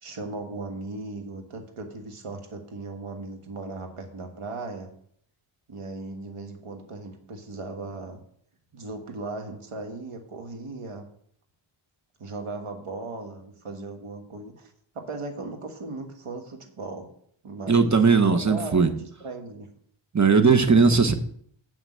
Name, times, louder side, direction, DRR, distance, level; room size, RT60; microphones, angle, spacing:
voice 1, 0.0-4.9 5.7-8.2 8.7-11.1 12.2-17.1 17.4-18.0 18.3-19.7 20.5-21.1, right 3 dB, 80° right, 4 dB, 1.7 m, -37 dB
voice 2, 17.7-18.9 20.1-21.1, right 4 dB, 35° right, 6 dB, 1.2 m, -18 dB
7.1 x 5.9 x 7.5 m, 0.63 s
wide cardioid pair, 85°, 50 cm